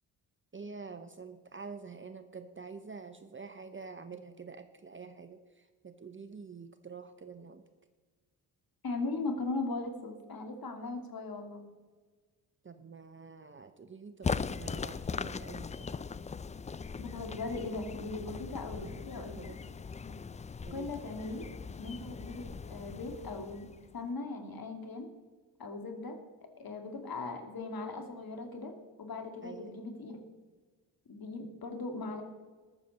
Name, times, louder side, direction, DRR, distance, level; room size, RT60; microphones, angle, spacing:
voice 1, 0.5-7.6 12.6-16.0 18.7-19.0 19.3-19.6 20.6-21.0 29.4-29.8, right 5 dB, 25° right, 9 dB, 0.8 m, -47 dB
voice 2, 8.8-11.7 17.0-19.5 20.0-20.2 20.7-21.5 21.8-23.7 23.9-25.1 25.6-26.2 26.6-28.7 29.0-30.2 31.1-32.2, left 3 dB, 45° left, 5 dB, 2.6 m, -39 dB
sound 1, 14.2-24.0, left 5 dB, 15° left, 0.4 m, -40 dB
20.0 x 7.0 x 4.2 m, 1.4 s
hypercardioid pair, 45°, 49 cm